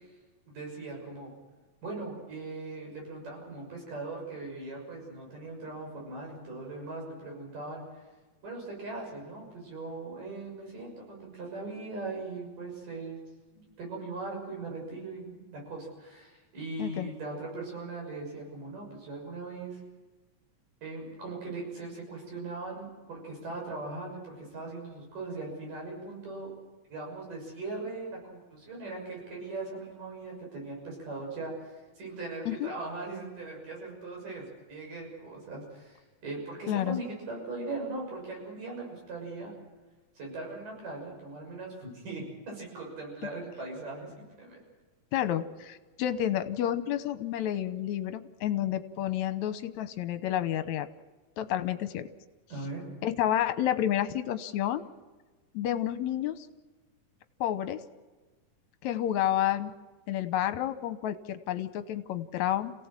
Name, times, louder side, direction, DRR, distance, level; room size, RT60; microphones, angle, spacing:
voice 1, 0.5-1.3 1.8-7.8 8.4-13.2 13.5-19.8 20.8-26.5 26.9-39.5 40.2-44.6 52.5-52.8, right 3 dB, 85° right, -1 dB, 8.0 m, -39 dB
voice 2, 36.7-37.0 45.1-50.9 51.4-52.1 53.0-54.8 55.5-56.4 57.4-57.8 58.8-59.7 60.1-62.7, left 11 dB, 70° left, 11 dB, 2.2 m, -30 dB
27.5 x 17.0 x 7.4 m, 1.3 s
omnidirectional pair, 3.7 m